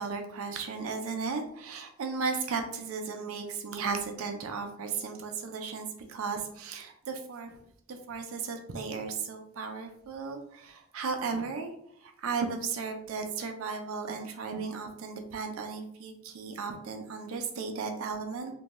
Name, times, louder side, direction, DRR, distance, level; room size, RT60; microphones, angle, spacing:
voice 1, 0.0-7.6 7.9-11.7 12.0-18.5, right 5 dB, 90° right, 5 dB, 0.5 m, -35 dB
2.6 x 2.2 x 3.0 m, 0.69 s
head